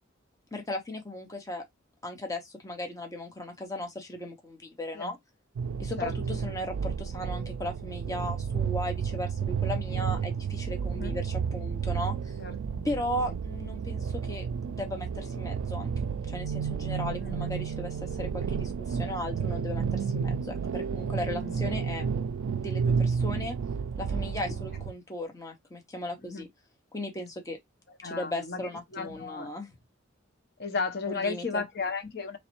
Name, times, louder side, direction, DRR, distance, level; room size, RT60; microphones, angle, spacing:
voice 1, 0.5-1.6 2.0-5.2 5.8-12.4 12.8-15.9 16.3-22.1 22.5-23.6 24.0-26.5 26.9-27.6 28.0-29.7 31.1-31.6, left 1 dB, 15° left, 0.8 m, -36 dB
sound 1, 5.6-24.9, right 6 dB, 85° right, 0.3 m, -31 dB
voice 2, 6.0-6.4 10.9-11.2 12.4-12.8 13.3-13.4 17.2-17.6 21.3-21.5 26.2-26.4 28.0-28.6 28.9-29.5 30.6-32.4, left 4 dB, 50° left, 0.9 m, -34 dB
4.0 x 3.1 x 2.9 m
head